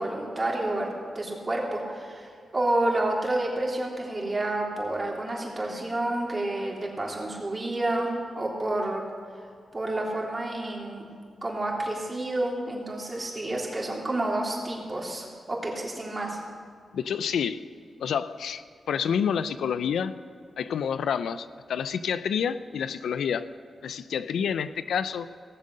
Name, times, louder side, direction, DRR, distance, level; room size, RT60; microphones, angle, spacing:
voice 1, 0.0-8.1 8.3-9.0 9.7-11.1 11.4-16.4, right 1 dB, 25° right, -3 dB, 3.4 m, -29 dB
voice 2, 16.9-17.6 18.0-20.1 20.6-23.5 23.8-25.3, left 7 dB, 90° left, 13 dB, 0.4 m, -28 dB
17.5 x 7.3 x 6.6 m, 2.2 s
cardioid pair, 75°, 0 cm